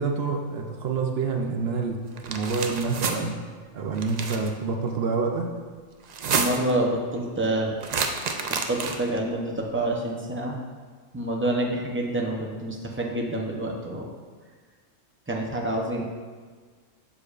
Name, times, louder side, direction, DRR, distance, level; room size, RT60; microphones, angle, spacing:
voice 1, 0.0-2.0 2.2-3.3 3.7-5.5, right 4 dB, 60° right, 2 dB, 0.8 m, -27 dB
sound 1, 2.2-3.2 4.0-4.5 6.0-6.7 7.8-9.2, right 5 dB, 85° right, 0.3 m, -29 dB
voice 2, 6.3-7.7 8.7-10.6 11.1-14.1 15.3-16.0, right 1 dB, 15° right, -1 dB, 0.5 m, -27 dB
7.1 x 6.6 x 2.5 m, 1.5 s
omnidirectional pair, 1.3 m